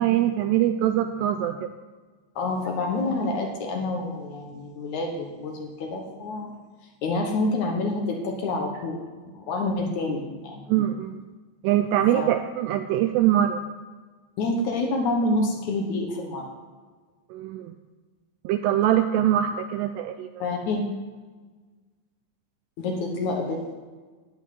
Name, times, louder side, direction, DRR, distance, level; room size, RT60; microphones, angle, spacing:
voice 1, 0.0-1.6 10.7-11.2 11.6-13.6 17.3-17.7 18.5-20.3, right 11 dB, 85° right, 8 dB, 2.5 m, -23 dB
voice 2, 2.4-6.6 7.0-9.0 9.3-10.7 12.1-12.3 14.4-16.4 20.4-20.8 22.8-23.7, left 2 dB, 75° left, 2 dB, 1.7 m, -27 dB
12.0 x 6.2 x 9.3 m, 1.4 s
omnidirectional pair, 5.2 m